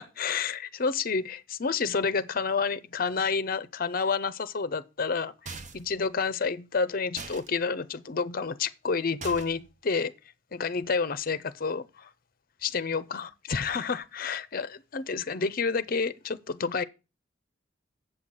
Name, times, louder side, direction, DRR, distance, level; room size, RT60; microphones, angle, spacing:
voice 1, 0.2-10.1 10.5-12.1 12.6-16.8, left 5 dB, 50° left, 0.6 m, -29 dB
sound 1, 5.5-6.0 7.2-7.5 9.2-9.7, right 4 dB, 40° right, 0.9 m, -41 dB
7.8 x 5.8 x 7.8 m
head